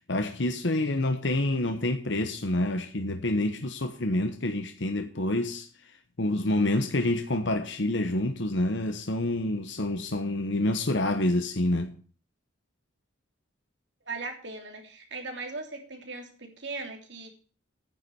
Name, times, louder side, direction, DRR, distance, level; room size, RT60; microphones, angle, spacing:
voice 1, 0.1-5.7 6.2-11.9, left 1 dB, 70° left, 1.1 m, -27 dB
voice 2, 14.1-17.3, right 3 dB, 65° right, 3.1 m, -38 dB
9.9 x 7.2 x 8.1 m
head